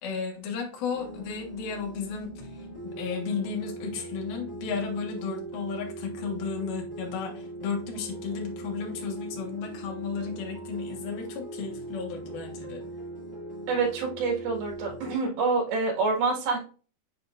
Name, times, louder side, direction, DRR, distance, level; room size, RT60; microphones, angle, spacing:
voice 1, 0.0-12.8, left 5 dB, 75° left, 1 dB, 3.3 m, -34 dB
sound 1, 0.9-15.2, right 2 dB, 5° left, 2.8 m, -40 dB
voice 2, 13.7-16.6, right 4 dB, 75° right, -1 dB, 3.7 m, -27 dB
7.8 x 5.1 x 2.5 m, 0.38 s
omnidirectional pair, 4.4 m